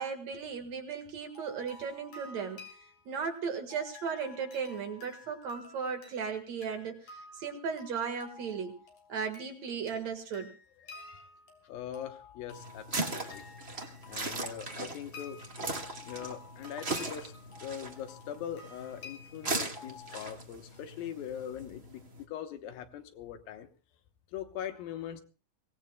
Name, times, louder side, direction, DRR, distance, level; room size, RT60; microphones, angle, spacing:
voice 1, 0.0-2.7 3.1-8.8 9.1-10.5, right 6 dB, 55° right, 5 dB, 2.5 m, -36 dB
sound 1, 1.2-20.2, left 4 dB, 50° left, 4.1 m, -52 dB
voice 2, 10.8-11.3 11.6-13.5 14.1-15.4 16.0-23.7 24.3-25.2, left 9 dB, 75° left, 9 dB, 2.7 m, -42 dB
sound 2, 12.5-22.2, right 3 dB, 85° right, 0.5 m, -39 dB
24.0 x 17.5 x 2.2 m, 0.35 s
omnidirectional pair, 4.2 m